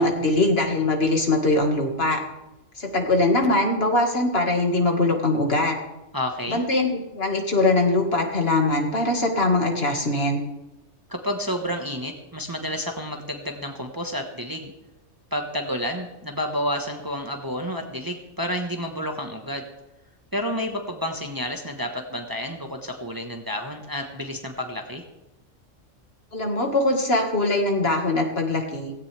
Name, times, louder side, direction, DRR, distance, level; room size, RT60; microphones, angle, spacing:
voice 1, 0.0-2.2 2.8-5.8 6.5-10.4 26.3-28.9, left 2 dB, 50° left, 2 dB, 2.2 m, -22 dB
voice 2, 6.1-6.6 11.1-14.7 15.3-19.6 20.3-25.0, equal, 15° right, 3 dB, 1.3 m, -30 dB
17.0 x 16.5 x 3.4 m, 0.97 s
omnidirectional pair, 1.3 m